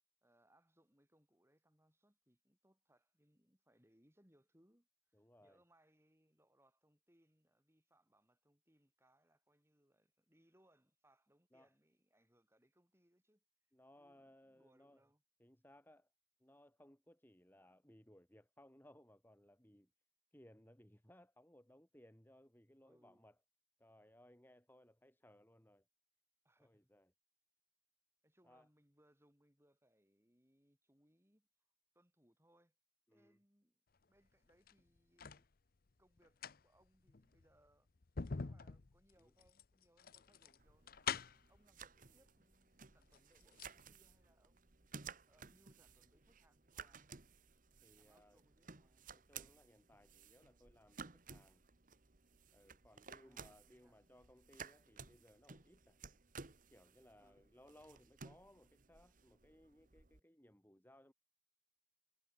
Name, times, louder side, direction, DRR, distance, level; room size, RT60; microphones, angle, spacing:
voice 1, 0.2-13.4 14.0-15.2 22.8-23.2 26.4-26.9 28.2-31.5 31.9-32.7 33.1-35.5 36.0-37.9 38.2-41.1 41.5-47.1 47.9-49.1 53.1-54.1 57.2-57.5, right 1 dB, 10° right, 4.8 m, -74 dB
voice 2, 5.1-5.6 11.5-11.7 13.7-15.0 15.4-16.1 16.4-19.9 20.3-23.4 23.8-25.8 26.6-27.1 28.4-28.7 33.1-33.4 39.2-39.3 42.0-42.2 47.8-48.4 49.1-51.7 52.5-56.0 56.7-61.1, left 1 dB, 10° left, 1.9 m, -65 dB
sound 1, 34.5-35.5 36.2-41.6 42.5-42.6 43.0-43.8 44.1-44.2, left 6 dB, 45° left, 0.6 m, -46 dB
sound 2, 40.6-60.2, right 5 dB, 40° right, 1.3 m, -57 dB
head